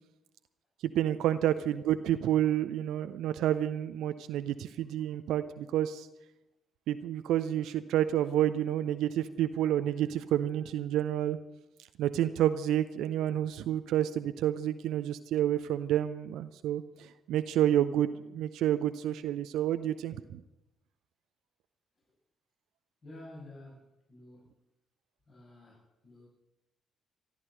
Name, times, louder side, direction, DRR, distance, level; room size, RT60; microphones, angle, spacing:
voice 1, 0.8-6.1 6.9-11.4 12.0-20.4, right 11 dB, 65° right, 11 dB, 0.6 m, -29 dB
voice 2, 23.0-24.6 25.3-26.3, left 1 dB, 45° left, -7 dB, 7.4 m, -51 dB
15.0 x 11.0 x 7.7 m, 0.92 s
figure-of-eight pair, 40°, 0 cm